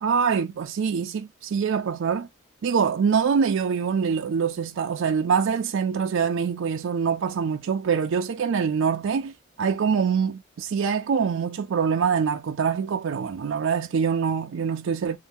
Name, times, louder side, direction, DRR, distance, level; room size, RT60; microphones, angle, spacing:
voice 1, 0.0-2.3 2.6-15.2, right 6 dB, 65° right, 0.4 m, -24 dB
2.6 x 2.2 x 3.4 m
head